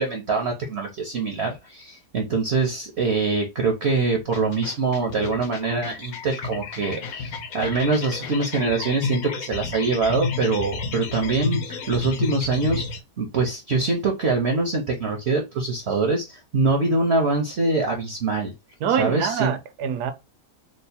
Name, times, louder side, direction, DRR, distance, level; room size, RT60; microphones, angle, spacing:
voice 1, 0.0-12.9 13.2-18.5 19.0-19.5, right 3 dB, 55° right, 0.7 m, -24 dB
sound 1, 4.2-13.0, left 4 dB, 70° left, 1.0 m, -31 dB
voice 2, 18.8-20.1, right 8 dB, 80° right, 1.1 m, -25 dB
3.1 x 2.0 x 4.1 m
omnidirectional pair, 1.7 m